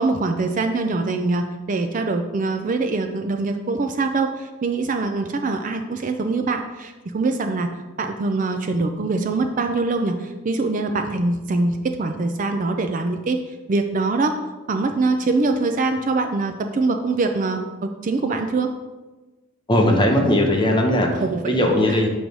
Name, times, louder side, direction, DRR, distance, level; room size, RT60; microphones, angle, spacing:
voice 1, 0.0-7.7 8.0-13.4 13.7-14.3 14.7-18.7 21.2-21.8, right 3 dB, 40° right, 6 dB, 0.4 m, -23 dB
voice 2, 19.7-22.1, left 1 dB, 20° left, 1 dB, 0.8 m, -19 dB
7.6 x 3.1 x 5.2 m, 1.2 s
head